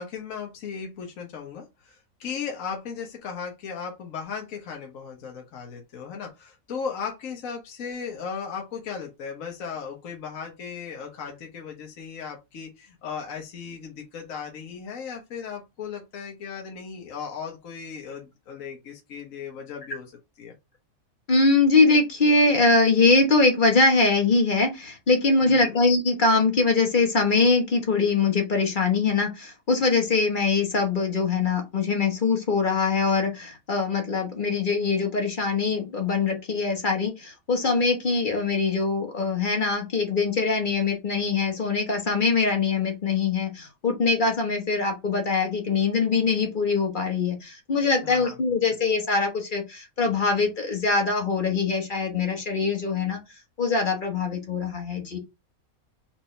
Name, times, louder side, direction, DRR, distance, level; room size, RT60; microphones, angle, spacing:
voice 1, 0.0-20.1 20.4-20.5 25.4-25.8 48.0-48.4, left 6 dB, 65° left, 1.4 m, -36 dB
voice 2, 21.3-53.2 53.6-55.2, left 4 dB, 35° left, 1.2 m, -23 dB
4.5 x 3.7 x 3.2 m
omnidirectional pair, 1.5 m